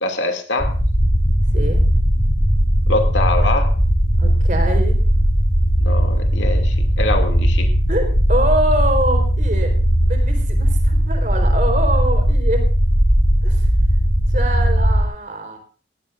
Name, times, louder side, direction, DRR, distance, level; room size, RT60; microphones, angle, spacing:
voice 1, 0.0-0.7 2.9-3.7 5.8-7.7, left 2 dB, 90° left, 4 dB, 2.6 m, -23 dB
sound 1, 0.6-15.0, equal, 35° left, 3.9 m, -17 dB
voice 2, 4.2-5.0 7.9-9.8 10.0-12.7 13.4-13.6 14.3-15.6, right 1 dB, 45° right, 5 dB, 4.1 m, -24 dB
18.0 x 17.5 x 2.6 m, 0.39 s
head